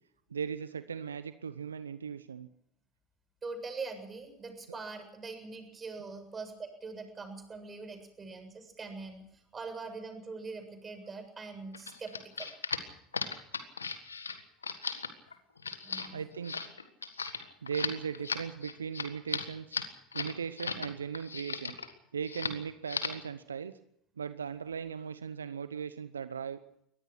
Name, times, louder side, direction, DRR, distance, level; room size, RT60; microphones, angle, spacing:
voice 1, 0.3-2.5 4.7-4.8 16.1-16.7 17.6-19.8 20.1-21.7 22.1-23.7 24.2-26.6, right 6 dB, 85° right, 13 dB, 0.8 m, -38 dB
voice 2, 3.4-12.5 15.8-16.2, right 4 dB, 25° right, 6 dB, 7.4 m, -43 dB
sound 1, 11.7-20.9 21.1-21.9 22.2-22.6 22.9-23.3, left 5 dB, 90° left, 1.6 m, -36 dB
24.0 x 19.0 x 6.2 m, 0.72 s
figure-of-eight pair, 70°, 0 cm